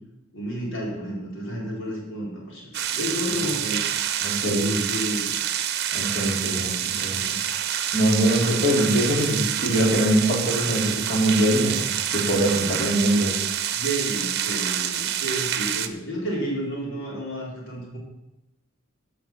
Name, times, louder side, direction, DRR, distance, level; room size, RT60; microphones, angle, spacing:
voice 1, 0.3-3.8 4.4-5.3 13.7-18.0, equal, 60° left, -4 dB, 4.5 m, -31 dB
sound 1, 2.7-15.9, right 10 dB, 50° right, 0.8 m, -27 dB
voice 2, 4.2-4.7 5.9-7.3 7.9-13.3, right 1 dB, 35° left, -2 dB, 3.7 m, -23 dB
13.0 x 5.9 x 7.5 m, 0.94 s
head